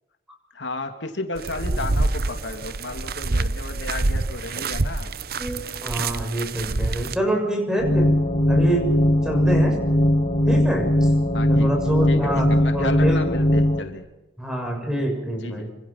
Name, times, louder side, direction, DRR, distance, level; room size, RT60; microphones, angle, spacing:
voice 1, 0.5-5.1 11.3-11.7 12.1-14.1 15.4-15.7, left 2 dB, 80° left, 6 dB, 2.9 m, -33 dB
sound 1, 1.4-7.2, right 2 dB, 55° right, 0.8 m, -26 dB
voice 2, 5.4-8.1 8.5-9.8 10.5-11.1 11.4-12.5 12.7-13.2 14.4-15.7, right 1 dB, 5° right, 3 dB, 6.8 m, -26 dB
sound 2, 7.8-13.8, equal, 35° left, 2.0 m, -19 dB
26.5 x 26.0 x 5.9 m, 0.94 s
head